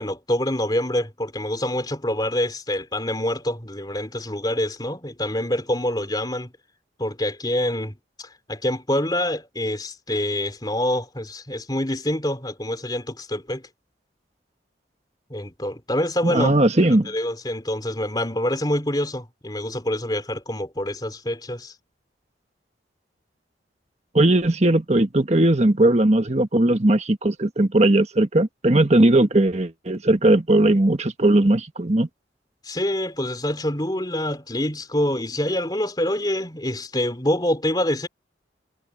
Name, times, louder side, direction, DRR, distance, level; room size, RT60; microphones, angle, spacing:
voice 1, 0.0-6.5 7.0-13.7 15.3-16.5 17.1-21.7 32.6-38.1, left 1 dB, 20° left, 3.4 m, -26 dB
voice 2, 16.2-17.1 24.1-32.1, right 1 dB, 35° right, 1.4 m, -18 dB
head